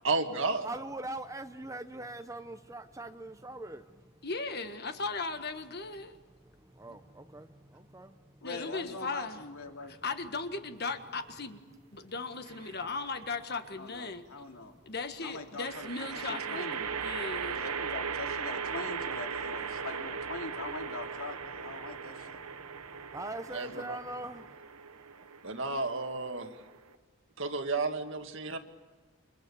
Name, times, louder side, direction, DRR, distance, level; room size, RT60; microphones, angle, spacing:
voice 1, 0.0-0.7 23.5-24.0 25.4-26.5 27.4-28.6, right 3 dB, 60° right, 6 dB, 2.0 m, -32 dB
voice 2, 0.6-4.2 6.4-8.4 22.4-24.6, right 2 dB, 15° right, 9 dB, 0.7 m, -43 dB
voice 3, 4.2-6.2 6.9-7.0 8.4-9.4 9.9-11.6 11.9-14.2 14.8-16.7 17.0-17.6, left 4 dB, 45° left, 8 dB, 1.6 m, -37 dB
voice 4, 8.4-9.9 13.8-14.8 15.2-16.9 17.5-22.4 23.7-23.9, left 3 dB, 70° left, 3 dB, 2.8 m, -42 dB
sound 1, 12.5-13.0 15.6-26.9, right 6 dB, 85° right, 1.2 m, -38 dB
28.5 x 25.5 x 7.1 m, 1.3 s
head